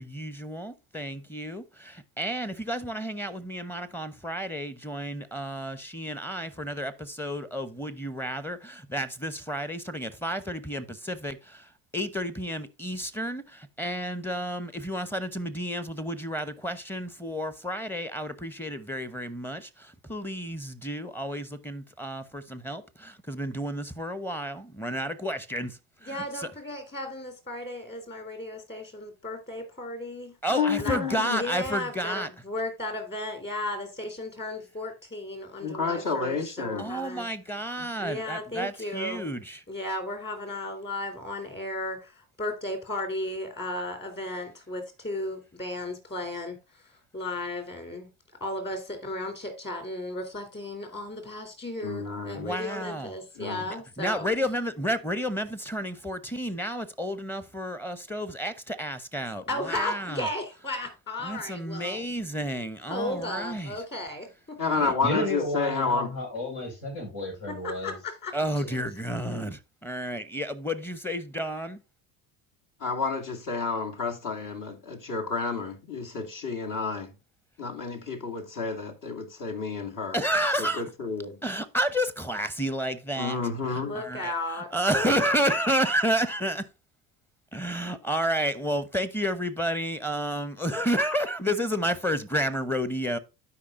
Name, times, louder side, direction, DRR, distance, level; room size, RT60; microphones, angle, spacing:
voice 1, 0.0-26.5 30.4-32.3 36.8-39.6 52.3-53.1 54.0-60.3 61.2-63.7 64.8-64.9 68.3-71.8 80.1-80.8 81.4-83.4 83.7-86.7 87.5-93.2, equal, 5° left, 0.9 m, -31 dB
voice 2, 26.1-30.3 30.8-31.0 31.3-37.3 38.0-39.3 39.7-46.6 47.1-48.1 48.4-54.3 59.5-62.0 62.9-64.9 67.5-68.7 83.7-84.7, left 1 dB, 25° left, 3.4 m, -35 dB
voice 3, 30.5-31.4 35.6-36.9 37.8-37.9 51.8-52.6 53.4-53.6 64.6-66.1 72.8-77.1 77.6-80.2 80.6-81.4 83.2-83.9, left 4 dB, 50° left, 2.2 m, -30 dB
voice 4, 65.0-68.0, left 2 dB, 70° left, 5.3 m, -32 dB
12.0 x 5.0 x 2.6 m
hypercardioid pair, 75°, 41 cm